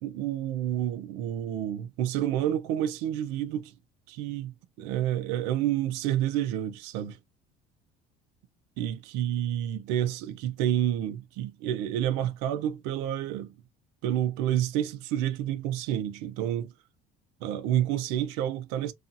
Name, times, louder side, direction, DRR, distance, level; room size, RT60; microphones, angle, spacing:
voice 1, 0.0-3.7 4.1-7.2 8.8-13.5 14.0-16.7 17.4-18.9, right 11 dB, 80° right, 0.5 m, -29 dB
2.6 x 2.4 x 2.5 m
cardioid pair, 160°, 17 cm